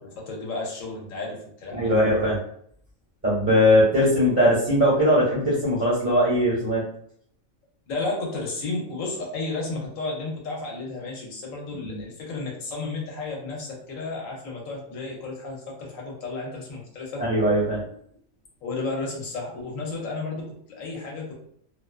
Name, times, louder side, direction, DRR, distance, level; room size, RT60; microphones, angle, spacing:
voice 1, 0.0-1.9 7.9-17.2 18.6-21.3, left 3 dB, 75° left, -1 dB, 1.1 m, -32 dB
voice 2, 1.7-2.4 3.2-6.8 11.8-12.0 17.2-17.8, equal, 15° right, -9 dB, 0.9 m, -20 dB
2.6 x 2.2 x 2.2 m, 0.65 s
omnidirectional pair, 1.4 m